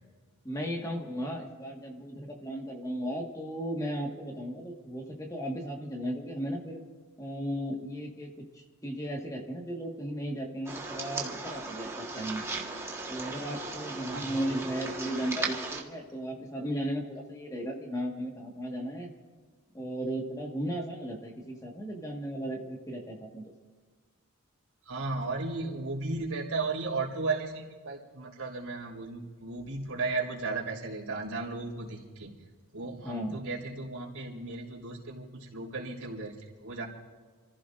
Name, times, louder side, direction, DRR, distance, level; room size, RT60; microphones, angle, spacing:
voice 1, 0.4-6.8 7.2-8.3 8.5-12.4 13.1-19.1 19.7-23.4 33.0-33.4, equal, 15° left, 1 dB, 1.7 m, -35 dB
sound 1, 10.7-15.8, right 3 dB, 10° right, 1.5 m, -37 dB
voice 2, 24.8-32.3 32.7-36.9, right 3 dB, 90° right, -3 dB, 4.0 m, -35 dB
29.0 x 15.0 x 2.6 m, 1.5 s
head